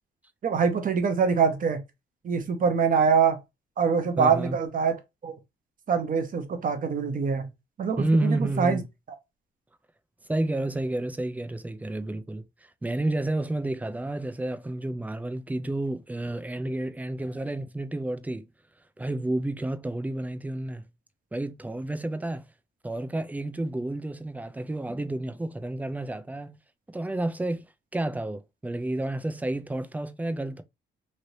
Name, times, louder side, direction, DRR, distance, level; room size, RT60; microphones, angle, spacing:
voice 1, 0.4-1.8 2.2-3.4 3.8-5.0 5.2-5.3 5.9-7.5 7.8-8.8, right 6 dB, 45° right, 0.8 m, -24 dB
voice 2, 4.2-4.6 8.0-8.9 10.3-12.4 12.8-18.5 19.0-20.8 21.3-22.5 22.8-26.6 26.9-27.6 27.9-30.6, right 1 dB, 10° right, 0.4 m, -30 dB
3.2 x 2.8 x 2.6 m
cardioid pair, 90°, 20 cm